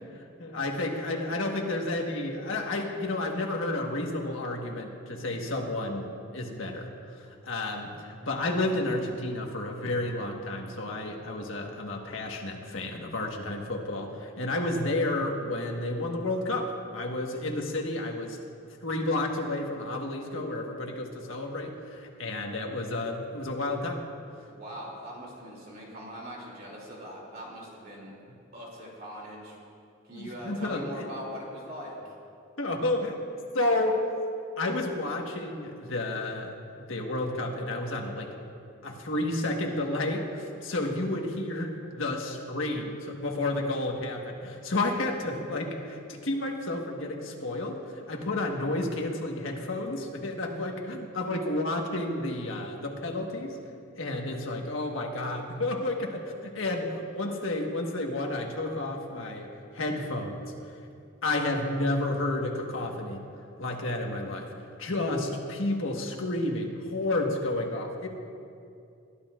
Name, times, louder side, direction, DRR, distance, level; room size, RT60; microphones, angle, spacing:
voice 1, 0.1-6.9 7.4-18.4 18.8-24.0 30.2-31.1 32.6-33.2 33.5-34.0 34.6-36.5 36.9-38.3 38.8-47.8 48.1-53.6 54.0-60.4 61.2-63.2 63.6-64.5 64.8-68.1, left 2 dB, 85° left, 1 dB, 1.5 m, -31 dB
voice 2, 24.5-28.1 28.5-29.6 30.0-32.1, equal, 50° right, -3 dB, 2.9 m, -41 dB
21.5 x 11.5 x 2.5 m, 2.5 s
head